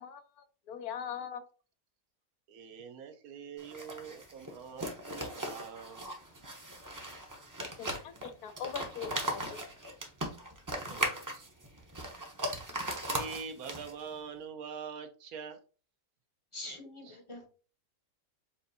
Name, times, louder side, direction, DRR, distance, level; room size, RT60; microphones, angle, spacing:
voice 1, 0.0-1.4 7.8-9.6, left 8 dB, 90° left, 1.2 m, -41 dB
voice 2, 2.5-6.1 10.7-11.5 13.1-15.6 17.0-17.2, right 6 dB, 75° right, 1.2 m, -44 dB
sound 1, 3.6-14.1, right 1 dB, 20° right, 0.5 m, -38 dB
voice 3, 16.5-17.5, left 2 dB, 30° left, 0.6 m, -44 dB
6.9 x 2.6 x 2.6 m
omnidirectional pair, 1.6 m